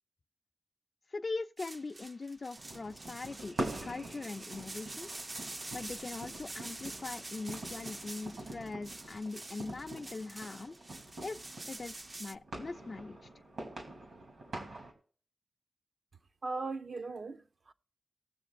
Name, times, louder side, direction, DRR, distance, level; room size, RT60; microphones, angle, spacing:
voice 1, 1.1-3.6 3.8-5.1 5.7-10.8 11.2-13.3, left 3 dB, 50° left, 0.4 m, -41 dB
sound 1, 1.6-12.3, right 2 dB, 35° right, 0.5 m, -46 dB
sound 2, 2.5-14.9, right 1 dB, 75° right, 3.4 m, -45 dB
voice 2, 16.4-17.7, right 3 dB, 60° right, 0.8 m, -39 dB
19.0 x 7.4 x 2.5 m
wide cardioid pair, 80°, 0 cm